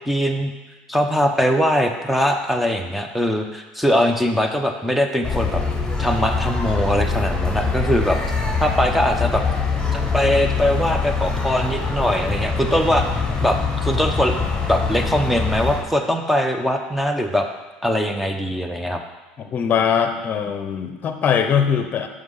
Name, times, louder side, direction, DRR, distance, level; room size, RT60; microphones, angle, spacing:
voice 1, 0.1-0.5 0.9-5.6 6.0-8.2 8.6-9.4 9.9-13.1 13.4-14.3 14.7-17.5 17.8-19.0, equal, ahead, 4 dB, 0.9 m, -21 dB
sound 1, 5.2-15.8, left 4 dB, 15° left, 1.5 m, -23 dB
voice 2, 19.4-22.1, left 7 dB, 40° left, 7 dB, 0.8 m, -21 dB
6.1 x 5.1 x 5.7 m, 1.2 s
hypercardioid pair, 90°, 5 cm